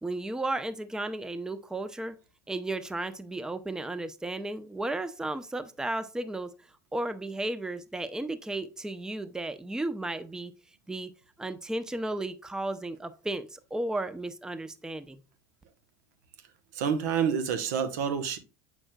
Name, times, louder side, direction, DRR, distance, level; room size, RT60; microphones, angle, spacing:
voice 1, 0.0-2.2 2.5-6.5 6.9-10.5 10.9-11.1 11.4-15.2, right 2 dB, 5° right, 0.6 m, -34 dB
voice 2, 16.7-18.4, right 7 dB, 75° right, 1.0 m, -28 dB
7.7 x 6.1 x 2.2 m
hypercardioid pair, 85°, 9 cm